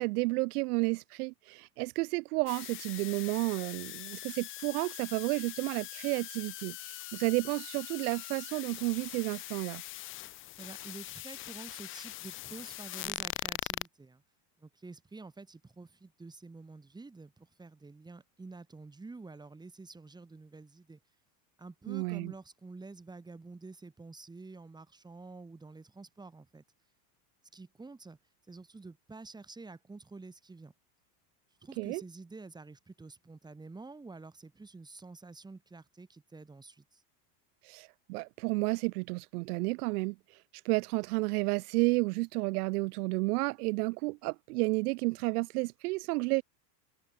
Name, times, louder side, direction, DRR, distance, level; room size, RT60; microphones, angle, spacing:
voice 1, 0.0-9.8 21.9-22.3 31.8-32.0 37.6-40.4 40.6-46.4, right 25 dB, 65° right, 0.8 m, -31 dB
sound 1, 2.5-13.9, left 16 dB, 25° left, 0.7 m, -42 dB
voice 2, 10.6-14.2 14.6-21.0 21.6-26.6 27.5-28.2 28.5-30.7 31.6-37.0, right 3 dB, 10° right, 5.3 m, -49 dB
open air
supercardioid pair, 160°, 49 cm